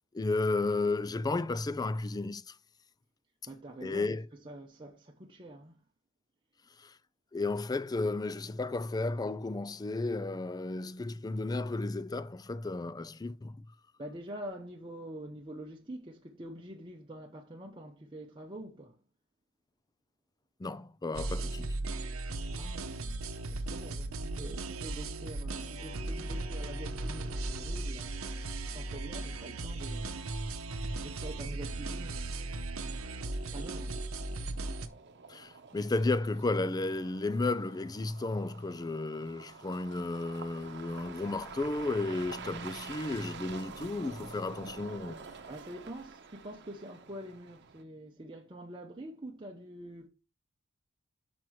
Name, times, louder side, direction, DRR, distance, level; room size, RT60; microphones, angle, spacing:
voice 1, 0.1-2.5 3.8-4.2 6.8-6.9 7.3-13.5 20.6-21.7 35.3-45.2, left 2 dB, 20° left, 0.4 m, -33 dB
voice 2, 3.5-5.8 14.0-19.0 22.5-30.2 31.0-32.5 33.5-33.9 45.5-50.1, right 1 dB, 25° right, 0.8 m, -46 dB
sound 1, 21.1-34.9, right 2 dB, 85° right, 0.8 m, -37 dB
sound 2, 28.5-47.8, right 5 dB, 55° right, 0.9 m, -49 dB
6.0 x 6.0 x 4.6 m
head